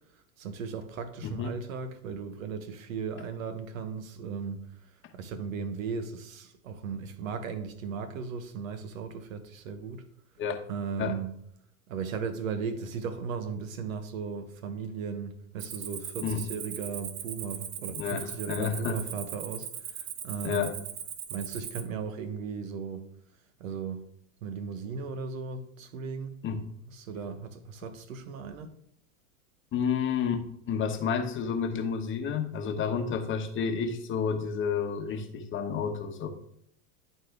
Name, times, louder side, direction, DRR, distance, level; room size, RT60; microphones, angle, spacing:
voice 1, 0.4-4.7 5.1-10.0 10.7-11.4 11.9-20.7 21.3-23.1 23.6-24.1 24.4-26.4 26.9-28.7, right 5 dB, 75° right, 1.2 m, -36 dB
voice 2, 1.2-1.6 10.4-10.6 11.0-11.2 16.2-16.4 18.0-19.0 20.4-20.8 26.4-26.6 29.7-36.3, left 6 dB, 30° left, 1.1 m, -30 dB
Cricket, 15.6-21.8, right 9 dB, 40° right, 1.0 m, -39 dB
11.0 x 4.2 x 3.5 m
hypercardioid pair, 105°, 41 cm